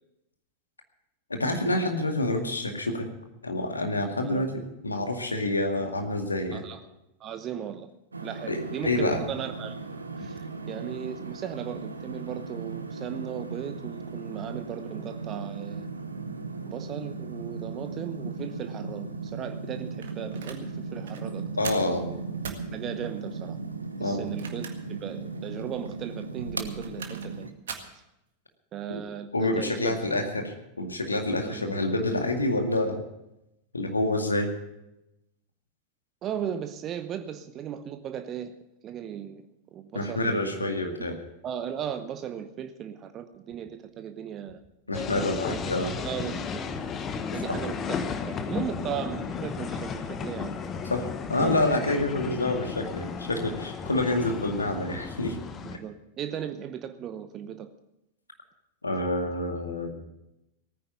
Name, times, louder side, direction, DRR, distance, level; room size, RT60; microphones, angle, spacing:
voice 1, 1.3-3.1 3.4-4.5 4.8-6.6 8.5-9.2 21.6-22.1 24.0-24.2 28.9-29.0 29.3-33.0 33.7-34.5 39.9-41.2 44.9-45.9 47.5-47.6 50.9-55.4 58.8-59.9, left 2 dB, 80° left, 4 dB, 2.1 m, -27 dB
voice 2, 7.2-7.9 8.2-9.8 10.2-15.9 16.7-22.0 22.7-23.6 24.0-27.5 28.7-30.1 31.4-31.7 36.2-38.6 38.8-40.7 41.1-41.2 41.4-44.6 45.5-45.7 46.0-46.7 47.3-50.9 51.4-51.6 55.6-57.7, right 9 dB, 30° right, 10 dB, 0.9 m, -37 dB
sound 1, 8.1-27.5, right 4 dB, 80° right, 1.2 m, -37 dB
sound 2, 20.0-20.6 21.0-21.2 21.6-21.9 22.4-22.7 24.2-25.0 25.4-25.5 26.6-27.3 27.7-28.0, right 6 dB, 65° right, 1.8 m, -40 dB
sound 3, 44.9-55.8, left 6 dB, 25° left, 1.3 m, -34 dB
17.5 x 9.7 x 7.0 m, 0.88 s
figure-of-eight pair, 90°, 0 cm